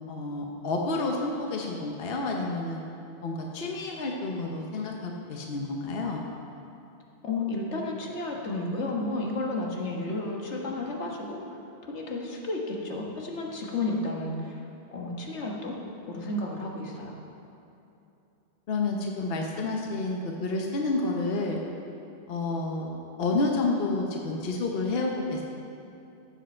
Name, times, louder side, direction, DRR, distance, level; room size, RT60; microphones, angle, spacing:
voice 1, 0.1-2.8 3.2-6.2 18.7-21.6 22.3-25.5, left 3 dB, 60° left, 0 dB, 1.1 m, -30 dB
voice 2, 7.2-11.4 11.9-14.6 14.9-15.8 16.1-17.2, left 2 dB, 85° left, -1 dB, 1.7 m, -32 dB
15.5 x 7.8 x 4.4 m, 2.8 s
omnidirectional pair, 1.1 m